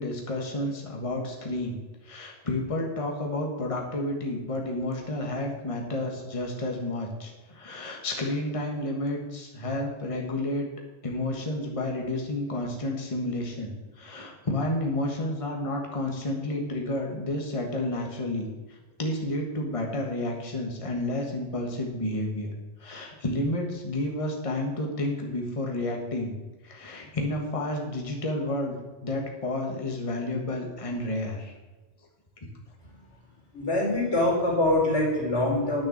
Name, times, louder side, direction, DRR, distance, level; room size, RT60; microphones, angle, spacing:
voice 1, 0.0-1.8 2.0-10.7 11.0-22.5 22.8-26.3 26.6-31.5, left 1 dB, 30° left, 0 dB, 1.5 m, -31 dB
voice 2, 33.5-35.9, left 1 dB, 90° left, -2 dB, 4.2 m, -24 dB
10.5 x 6.3 x 7.3 m, 1.2 s
omnidirectional pair, 1.2 m